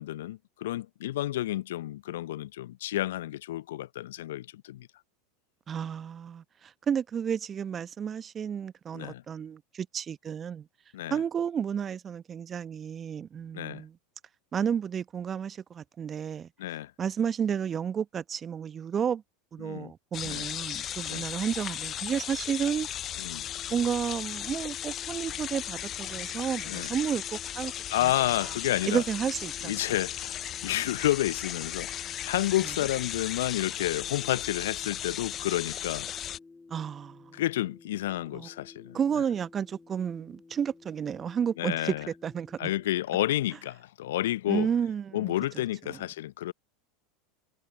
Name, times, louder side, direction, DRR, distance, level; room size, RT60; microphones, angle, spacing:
voice 1, 0.0-4.9 8.9-9.2 10.9-11.2 13.5-13.8 16.6-16.9 19.6-19.9 20.2-20.5 21.1-21.3 23.2-23.4 26.7-26.9 27.9-29.0 29.6-36.1 37.3-39.0 41.6-42.1 42.6-44.7 45.1-46.5, left 14 dB, 65° left, 0.8 m, -30 dB
voice 2, 5.7-10.7 11.1-14.0 14.5-16.5 17.0-19.2 19.5-22.9 23.7-27.7 28.0-28.1 28.9-29.8 36.7-37.4 38.3-38.5 38.9-41.9 42.2-42.7 44.5-45.3, right 8 dB, 30° right, 1.1 m, -31 dB
sound 1, 20.1-36.4, left 11 dB, 35° left, 0.6 m, -36 dB
sound 2, 23.3-43.0, left 3 dB, 15° left, 3.9 m, -55 dB
figure-of-eight pair, 80°, 0 cm